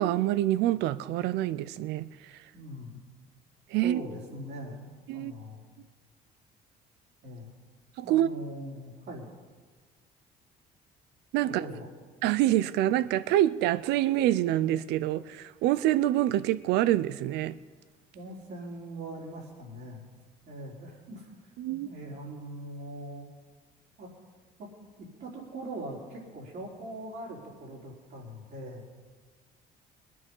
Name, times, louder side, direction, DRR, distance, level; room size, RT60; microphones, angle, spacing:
voice 1, 0.0-2.1 3.7-4.0 5.1-5.3 8.0-8.3 11.3-11.6 12.2-17.6 21.6-21.9, right 13 dB, 90° right, 17 dB, 0.5 m, -26 dB
voice 2, 2.5-3.0 3.8-5.6 7.2-7.5 8.0-9.3 11.4-11.9 18.1-20.0 20.5-21.3 21.7-23.3 24.0-24.1 24.6-24.7 25.2-28.8, right 1 dB, 65° right, -4 dB, 4.2 m, -41 dB
21.0 x 9.4 x 5.5 m, 1.5 s
cardioid pair, 110°, 17 cm